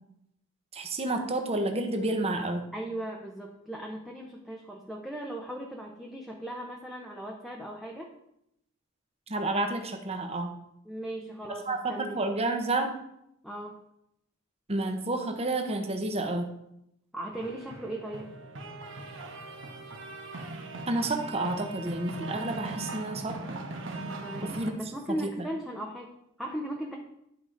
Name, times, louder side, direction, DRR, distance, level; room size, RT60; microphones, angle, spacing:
voice 1, 0.7-2.7 9.3-10.5 11.7-13.0 14.7-16.5 20.9-23.4 24.4-24.8 25.1-25.5, right 2 dB, 30° right, 5 dB, 0.9 m, -30 dB
voice 2, 2.7-8.1 10.9-12.2 13.4-13.8 17.1-18.4 24.2-27.0, right 1 dB, ahead, -1 dB, 0.7 m, -38 dB
sound 1, 17.3-24.7, right 2 dB, 60° right, 1.1 m, -40 dB
10.5 x 4.9 x 3.8 m, 0.78 s
head